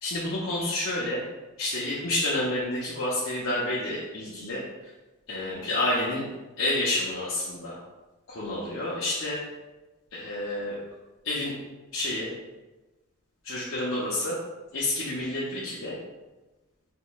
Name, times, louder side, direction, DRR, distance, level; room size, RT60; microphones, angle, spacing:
voice 1, 0.0-1.2 1.6-4.6 5.3-6.2 6.6-7.8 8.3-9.4 10.1-10.8 11.2-11.5 11.9-12.3 13.4-14.4 14.7-16.0, left 1 dB, 65° left, -7 dB, 0.7 m, -29 dB
6.1 x 3.0 x 2.3 m, 1.1 s
head